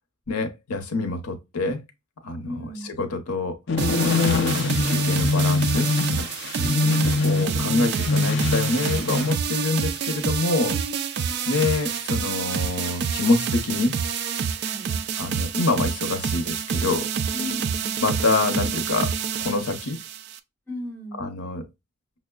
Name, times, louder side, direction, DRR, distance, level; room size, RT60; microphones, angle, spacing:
voice 1, 0.3-1.8 2.2-2.5 3.0-3.6 4.2-5.9 7.2-10.7 11.5-13.9 15.2-17.1 18.0-20.0 21.2-21.6, left 3 dB, 85° left, 0.8 m, -26 dB
voice 2, 2.4-2.9 6.6-7.0 10.7-10.9 14.6-15.0 17.3-18.0 20.7-21.2, left 1 dB, 10° left, 1.2 m, -36 dB
sound 1, 3.7-9.4, left 3 dB, 50° left, 0.5 m, -23 dB
sound 2, 3.8-20.4, right 7 dB, 50° right, 0.3 m, -28 dB
5.9 x 2.1 x 2.2 m
head